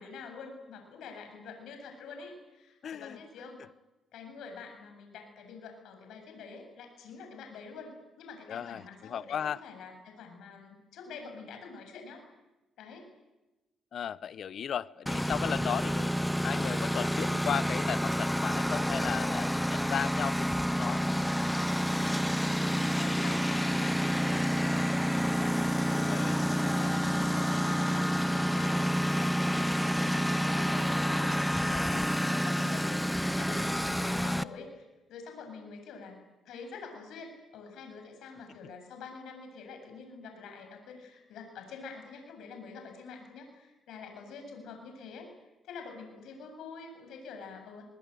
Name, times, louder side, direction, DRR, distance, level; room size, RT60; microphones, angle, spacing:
voice 1, 0.0-3.6 4.1-12.2 12.8-13.1 22.6-45.3 45.6-47.8, left 5 dB, 80° left, 4 dB, 7.7 m, -46 dB
voice 2, 2.8-3.2 8.5-9.6 13.9-16.1 16.4-21.0 25.9-26.4 31.7-32.6, left 8 dB, 60° left, 17 dB, 0.9 m, -36 dB
Engine, 15.1-34.4, equal, 5° left, 0.8 m, -29 dB
22.5 x 22.5 x 9.3 m, 1.0 s
cardioid pair, 90°, 0 cm